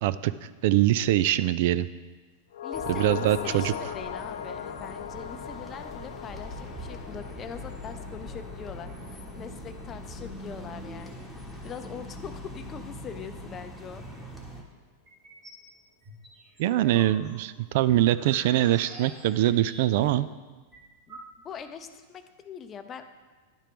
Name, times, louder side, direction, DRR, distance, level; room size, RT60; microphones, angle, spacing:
voice 1, 0.0-1.9 2.9-3.7 16.6-20.3, right 14 dB, 65° right, 15 dB, 0.3 m, -23 dB
sound 1, 2.5-11.0 11.3-11.4, left 8 dB, 80° left, 0.5 m, -39 dB
voice 2, 2.6-11.3 11.6-14.4 21.1-21.2 21.4-23.1, left 7 dB, 25° left, 8 dB, 0.6 m, -42 dB
sound 2, 2.7-14.6, left 1 dB, ahead, 1.3 m, -42 dB
sound 3, 15.1-15.6 16.0-20.2 20.5-20.6 20.7-21.7, right 1 dB, 30° right, 2.8 m, -47 dB
11.0 x 4.4 x 5.1 m, 1.3 s
hypercardioid pair, 125°, 0 cm